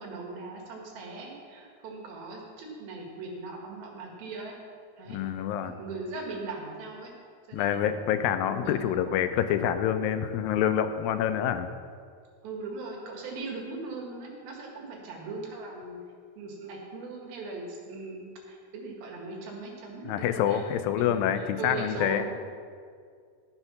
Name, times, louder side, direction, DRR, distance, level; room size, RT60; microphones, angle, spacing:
voice 1, 0.0-4.6 5.0-5.2 5.6-7.1 7.5-9.2 12.4-16.0 16.4-20.7 21.0-22.3, right 3 dB, 90° right, -1 dB, 3.6 m, -39 dB
voice 2, 5.1-5.7 7.5-11.7 20.1-22.3, left 9 dB, 85° left, 9 dB, 2.4 m, -27 dB
12.5 x 6.8 x 5.9 m, 2.1 s
omnidirectional pair, 4.1 m